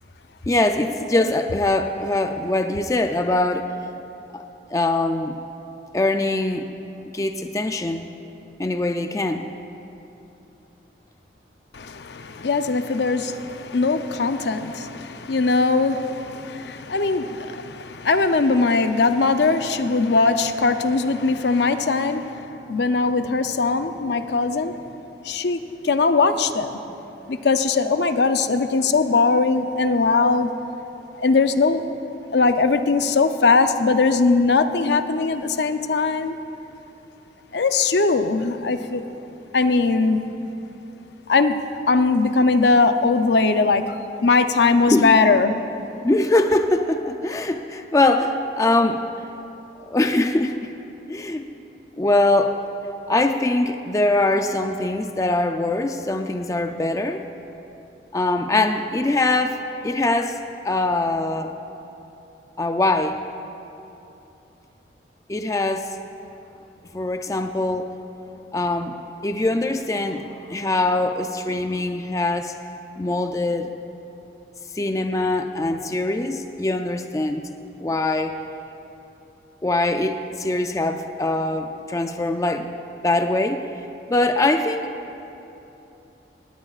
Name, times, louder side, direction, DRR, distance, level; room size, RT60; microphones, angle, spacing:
voice 1, 0.5-3.7 4.3-4.4 4.7-5.4 5.9-6.7 7.1-8.1 8.6-9.5 44.9-45.2 46.0-49.1 49.9-50.7 51.1-51.5 52.0-52.6 53.1-57.2 58.1-60.4 60.6-61.5 62.6-63.2 65.3-65.9 66.9-67.9 68.5-69.0 69.2-72.5 73.0-73.7 74.7-77.4 77.8-78.3 79.6-82.7 83.0-83.6 84.1-84.9, left 2 dB, 20° left, 6 dB, 0.4 m, -22 dB
voice 2, 11.7-24.8 25.2-25.6 25.8-26.8 27.3-30.5 31.1-31.8 32.3-36.4 37.5-39.0 39.5-40.2 41.3-41.6 41.9-45.5, left 4 dB, 70° left, 9 dB, 0.6 m, -20 dB
18.5 x 18.5 x 2.4 m, 2.9 s
head